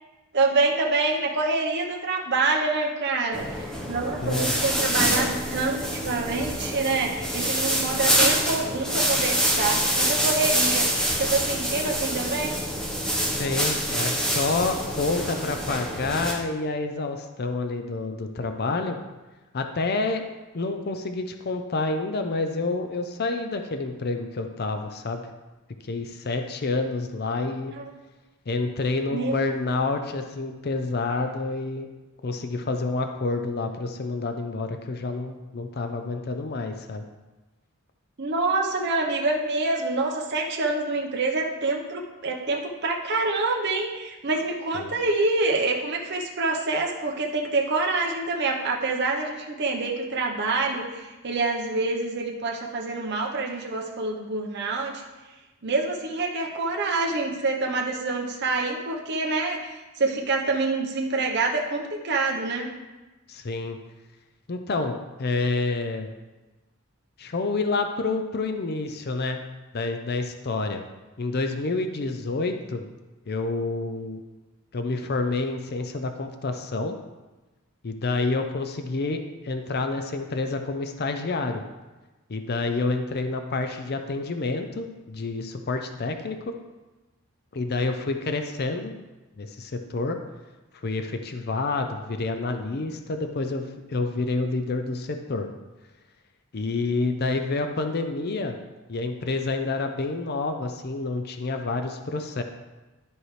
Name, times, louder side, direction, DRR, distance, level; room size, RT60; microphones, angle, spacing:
voice 1, 0.3-12.6 27.7-27.9 29.1-29.5 38.2-55.0 55.6-62.7, right 3 dB, 50° right, -1 dB, 0.9 m, -26 dB
sound 1, 3.3-16.3, equal, 5° left, 1.0 m, -26 dB
voice 2, 4.2-4.5 13.4-19.0 19.5-20.2 20.5-25.2 25.8-27.7 28.5-31.9 32.2-37.1 44.7-44.9 63.3-63.8 64.5-66.1 67.2-69.5 69.7-70.8 71.2-72.8 73.3-74.2 74.7-77.0 77.8-81.6 82.3-86.5 87.5-88.9 89.4-90.2 90.8-95.5 96.5-98.6 98.9-102.4, left 3 dB, 45° left, 6 dB, 0.5 m, -28 dB
12.5 x 4.6 x 3.3 m, 1.1 s
head